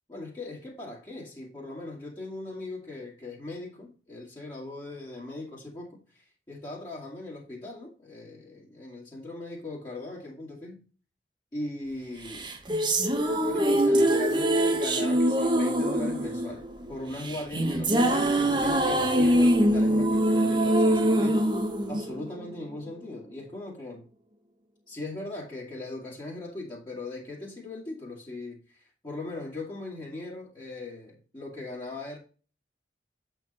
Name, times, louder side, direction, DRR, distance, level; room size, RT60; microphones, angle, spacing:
voice 1, 0.1-10.8 11.5-12.5 13.4-16.6 16.9-21.5 21.9-24.0 24.9-32.2, left 2 dB, 25° left, 2.1 m, -39 dB
sound 1, 12.3-22.7, right 1 dB, 25° right, 1.1 m, -24 dB
8.2 x 4.7 x 4.2 m
head